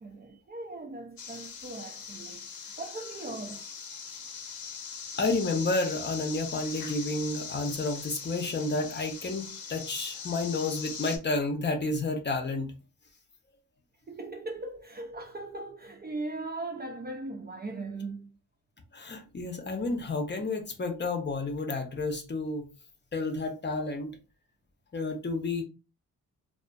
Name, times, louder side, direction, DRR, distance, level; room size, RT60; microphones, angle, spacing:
voice 1, 0.0-3.6 14.1-18.3, right 2 dB, 30° right, 0.4 m, -39 dB
sound 1, 1.2-11.2, left 6 dB, 70° left, 0.7 m, -41 dB
voice 2, 5.2-12.7 18.9-22.7 23.1-24.1 24.9-25.6, left 3 dB, 30° left, 0.6 m, -31 dB
2.5 x 2.4 x 2.2 m
cardioid pair, 75°, 37 cm